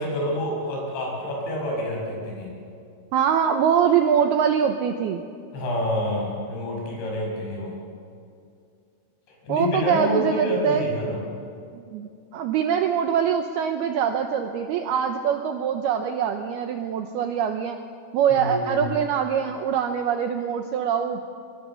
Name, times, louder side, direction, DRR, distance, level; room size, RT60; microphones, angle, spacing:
voice 1, 0.0-2.5 5.5-7.8 9.4-11.2 18.3-18.9, equal, 60° left, -2 dB, 8.3 m, -27 dB
voice 2, 3.1-5.2 9.5-10.9 11.7-17.8 18.1-21.3, right 8 dB, 85° right, 6 dB, 2.2 m, -23 dB
24.0 x 23.0 x 7.1 m, 2.4 s
omnidirectional pair, 5.7 m